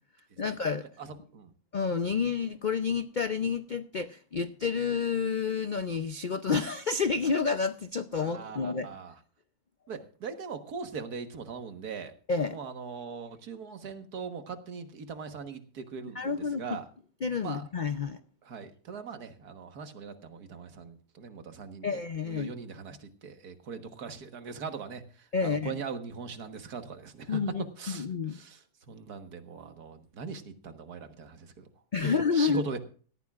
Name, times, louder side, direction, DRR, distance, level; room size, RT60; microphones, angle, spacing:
voice 1, 0.4-0.9 1.7-8.9 12.3-12.6 16.1-16.6 17.2-18.2 21.8-22.5 25.3-25.8 27.3-28.4 31.9-32.6, left 5 dB, 80° left, 0.4 m, -29 dB
voice 2, 1.0-1.5 8.2-9.1 9.9-12.1 12.5-16.8 17.4-17.6 18.4-31.7 32.0-32.8, right 5 dB, 70° right, 1.9 m, -40 dB
18.0 x 14.0 x 2.4 m
omnidirectional pair, 1.7 m